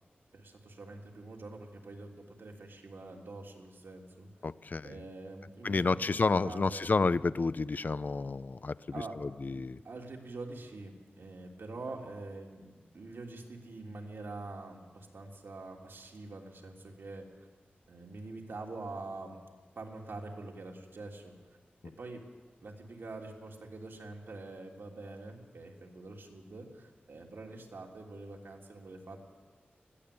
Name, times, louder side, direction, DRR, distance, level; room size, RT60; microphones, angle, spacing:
voice 1, 0.3-4.3 4.8-6.9 8.9-9.2 9.5-17.5 17.9-19.4 19.7-21.3 22.0-22.2 22.6-29.2, right 2 dB, 85° right, 0 dB, 3.2 m, -45 dB
voice 2, 4.4-5.0 5.6-8.7 9.2-9.8, left 4 dB, 50° left, 16 dB, 0.5 m, -30 dB
21.0 x 15.0 x 8.6 m, 1.4 s
wide cardioid pair, 80°, 4 cm